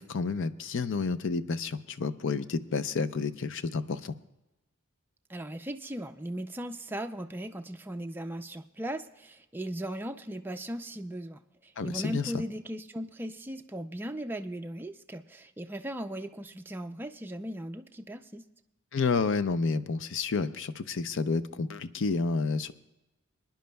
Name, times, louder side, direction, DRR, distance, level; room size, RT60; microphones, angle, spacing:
voice 1, 0.0-4.1 11.8-12.4 18.9-22.7, left 4 dB, 60° left, 13 dB, 0.5 m, -30 dB
voice 2, 5.3-18.4, right 1 dB, 10° right, 6 dB, 0.4 m, -38 dB
24.0 x 10.5 x 2.2 m, 0.96 s
head